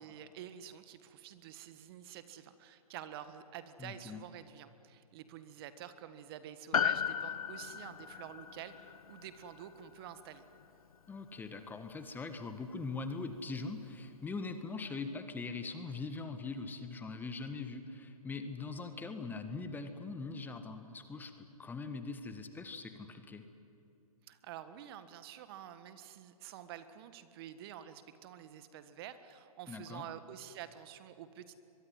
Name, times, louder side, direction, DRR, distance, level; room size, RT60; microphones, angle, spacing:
voice 1, 0.0-10.4 24.3-31.5, right 10 dB, 40° right, 12 dB, 1.6 m, -49 dB
voice 2, 3.8-4.2 11.1-23.5 29.7-30.1, left 4 dB, 10° left, 8 dB, 1.6 m, -42 dB
Piano, 6.7-11.3 11.6-11.7, left 8 dB, 65° left, 1.3 m, -37 dB
23.5 x 23.0 x 9.8 m, 2.8 s
figure-of-eight pair, 125°, 19 cm